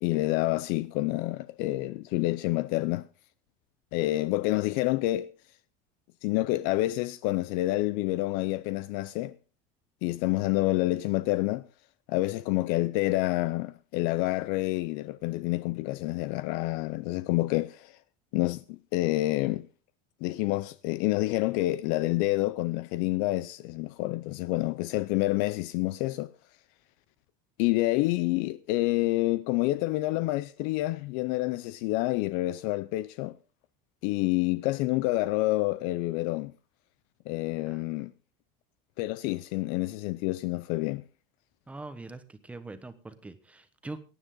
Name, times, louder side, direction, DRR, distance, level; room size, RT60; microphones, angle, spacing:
voice 1, 0.0-3.1 3.9-5.3 6.2-9.3 10.0-11.6 12.1-18.0 18.3-19.7 20.2-26.3 27.6-33.4 34.0-36.5 37.3-38.1 39.0-41.0, left 18 dB, 65° left, 0.5 m, -28 dB
voice 2, 41.7-44.1, right 2 dB, 10° right, 1.1 m, -43 dB
18.5 x 10.0 x 3.8 m
cardioid pair, 155°, 16 cm